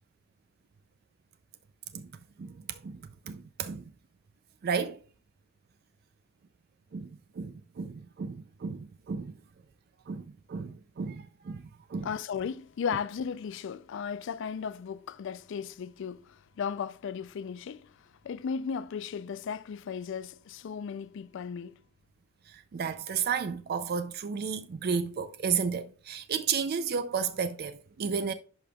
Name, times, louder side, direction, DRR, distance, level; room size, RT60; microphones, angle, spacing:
voice 1, 2.4-3.0 3.3-3.8 4.6-5.0 6.9-9.3 10.1-12.1 22.5-28.3, right 6 dB, 50° right, 0.4 m, -33 dB
voice 2, 12.0-21.8, left 6 dB, 60° left, 0.3 m, -36 dB
11.0 x 5.1 x 2.3 m
head